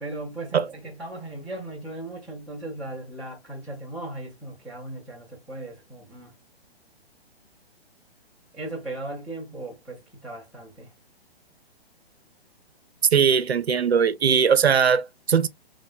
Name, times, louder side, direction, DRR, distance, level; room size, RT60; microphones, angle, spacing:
voice 1, 0.0-6.3 8.5-10.9, right 2 dB, ahead, 0.4 m, -37 dB
voice 2, 13.1-15.5, right 7 dB, 85° right, 0.5 m, -20 dB
2.9 x 2.2 x 2.4 m
figure-of-eight pair, 130°, 31 cm